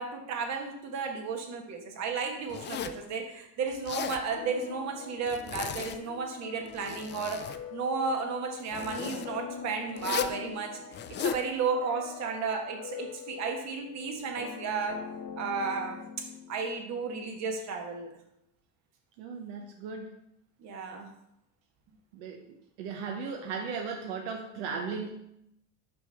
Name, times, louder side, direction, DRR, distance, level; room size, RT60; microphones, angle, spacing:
voice 1, 0.0-7.4 7.7-10.7 11.2-15.0 15.4-16.0 16.5-18.1 20.6-21.0, right 5 dB, 55° right, 3 dB, 1.4 m, -33 dB
Zipper (clothing), 2.5-3.1 3.7-4.2 5.3-6.2 6.6-7.6 8.7-9.3 10.0-10.4 10.9-11.4, left 9 dB, 35° left, 0.4 m, -36 dB
sound 1, 4.3-16.7, left 7 dB, 50° left, 0.9 m, -44 dB
voice 2, 19.2-20.1 22.1-22.4 22.8-25.1, right 5 dB, 90° right, 2 dB, 0.8 m, -36 dB
5.9 x 5.4 x 3.5 m, 0.80 s
supercardioid pair, 100°, 32 cm